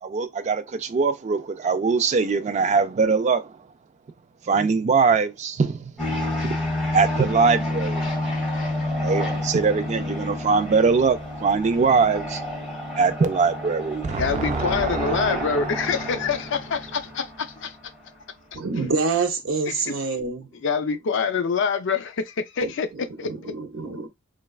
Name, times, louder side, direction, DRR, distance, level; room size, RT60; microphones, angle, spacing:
voice 1, 0.0-3.5 4.5-5.9 6.4-6.5 6.9-8.1 8.8-12.4 12.9-15.8, right 5 dB, 35° right, 0.3 m, -22 dB
sound 1, 6.0-18.1, left 1 dB, ahead, 1.6 m, -29 dB
voice 2, 14.2-17.8 19.7-20.0 20.6-23.5, left 5 dB, 60° left, 0.4 m, -26 dB
voice 3, 18.5-20.5 22.6-22.7 23.2-24.1, right 4 dB, 75° right, 0.7 m, -26 dB
3.2 x 2.3 x 2.3 m
head